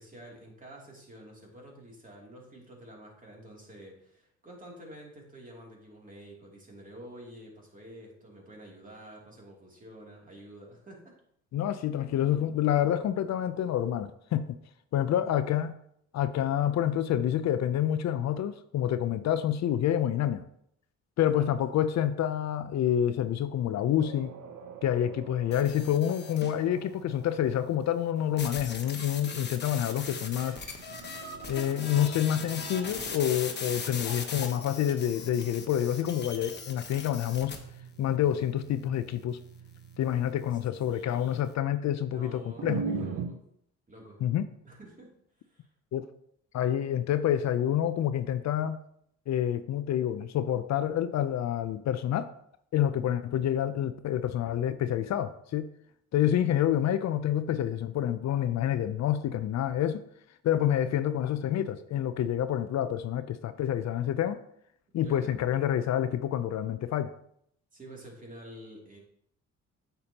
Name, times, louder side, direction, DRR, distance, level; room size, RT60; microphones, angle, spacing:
voice 1, 0.0-11.2 21.2-21.6 40.5-40.6 40.9-41.5 42.1-43.4 43.9-44.2 44.6-45.1 45.5-45.7 65.0-65.4 67.7-69.0, right 1 dB, 25° right, 2.7 m, -49 dB
voice 2, 11.5-14.5 14.9-15.8 16.1-20.4 21.2-24.3 24.8-30.6 31.5-37.6 38.0-39.4 40.0-42.9 44.2-44.5 45.9-46.1 46.5-48.8 49.3-52.3 52.7-55.7 56.1-60.0 60.4-64.4 64.9-67.1, left 10 dB, 65° left, 0.5 m, -28 dB
sound 1, 24.0-43.3, right 5 dB, 75° right, 1.0 m, -44 dB
sound 2, 25.5-26.6 28.4-37.6, left 5 dB, 35° left, 1.2 m, -39 dB
8.7 x 6.8 x 2.9 m
cardioid pair, 90°, 30 cm